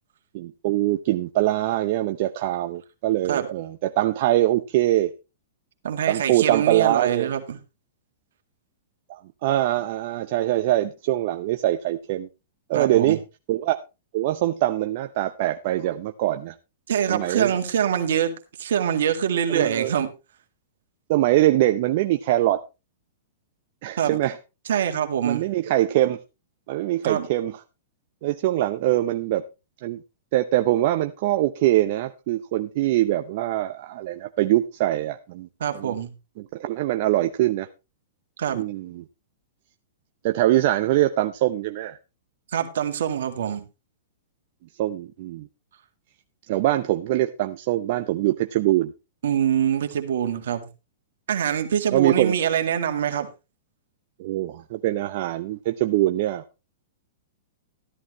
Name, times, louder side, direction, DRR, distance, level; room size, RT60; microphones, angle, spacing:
voice 1, 0.3-5.1 6.1-7.3 9.1-12.3 12.7-13.2 13.5-13.8 14.1-16.5 17.1-17.6 19.5-19.9 21.1-22.6 23.8-24.4 25.2-26.2 26.7-27.5 28.2-29.4 29.8-30.0 30.3-35.5 35.7-36.0 36.4-37.7 38.5-39.0 40.2-42.0 44.8-45.5 46.5-48.9 51.9-52.4 54.2-56.4, right 14 dB, 55° right, 0.7 m, -23 dB
voice 2, 5.8-7.6 12.7-13.2 16.9-18.3 18.6-20.1 24.0-24.2 24.7-25.4 27.0-27.3 35.6-36.1 38.4-38.6 42.5-43.6 49.2-50.7 51.3-53.3, right 9 dB, 75° right, 2.0 m, -24 dB
13.0 x 11.0 x 3.1 m
hypercardioid pair, 120°, 0 cm